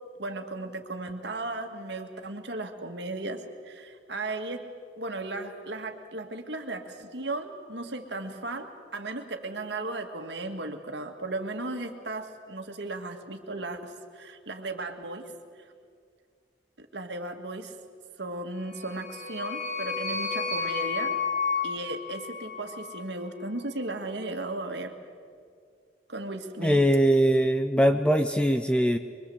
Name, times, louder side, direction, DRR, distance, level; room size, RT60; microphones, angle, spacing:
voice 1, 0.2-4.6 5.0-15.3 16.8-17.7 18.2-21.1 21.6-24.9 26.1-26.8, right 2 dB, 70° right, 5 dB, 2.1 m, -36 dB
sound 1, 18.7-23.0, left 5 dB, 60° left, 6.2 m, -31 dB
voice 2, 26.6-29.0, equal, 5° left, 7 dB, 0.6 m, -22 dB
24.0 x 23.5 x 8.0 m, 2.1 s
head